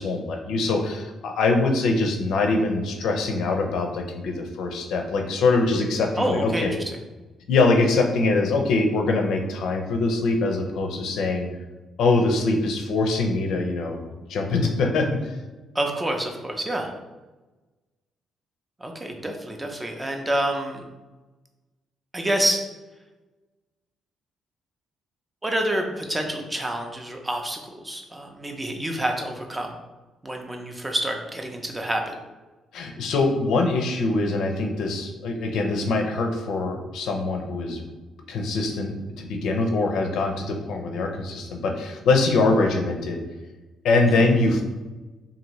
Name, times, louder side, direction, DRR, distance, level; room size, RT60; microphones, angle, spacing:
voice 1, 0.0-6.8 7.5-11.5 12.0-14.0 14.3-15.3 32.7-37.8 38.3-43.2 43.8-44.6, left 3 dB, 80° left, 3 dB, 0.4 m, -23 dB
voice 2, 6.2-7.0 15.7-16.9 18.8-20.8 22.1-22.6 25.4-29.7 30.2-32.1 44.1-44.2, right 1 dB, 15° right, 3 dB, 0.4 m, -28 dB
2.6 x 2.5 x 3.0 m, 1.1 s
cardioid pair, 90°, 0 cm